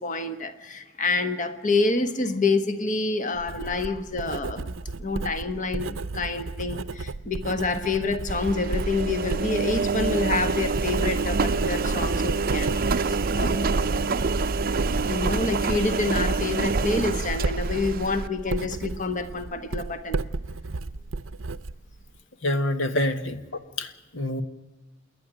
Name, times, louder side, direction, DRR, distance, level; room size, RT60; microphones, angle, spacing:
voice 1, 0.0-4.7 5.0-14.2 15.0-20.2, left 3 dB, 40° left, 10 dB, 1.4 m, -28 dB
Writing, 3.3-22.2, right 3 dB, 85° right, 0.7 m, -34 dB
Engine, 8.3-18.3, right 4 dB, 45° right, 0.6 m, -26 dB
voice 2, 22.4-23.3 23.8-24.4, left 1 dB, 70° left, 10 dB, 1.4 m, -26 dB
28.0 x 10.5 x 9.0 m, 1.2 s
head